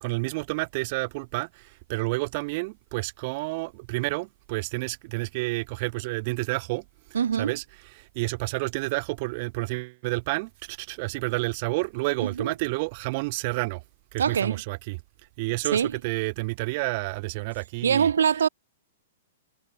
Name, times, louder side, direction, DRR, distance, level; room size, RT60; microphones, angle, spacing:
voice 1, 0.0-6.8 7.4-7.6 7.9-13.8 14.1-15.0 15.4-18.1, right 26 dB, 45° right, 0.9 m, -30 dB
voice 2, 7.1-7.5 12.2-12.5 14.2-14.6 15.7-15.9 17.8-18.5, right 7 dB, 85° right, 0.4 m, -23 dB
hypercardioid pair, 135°, 0 cm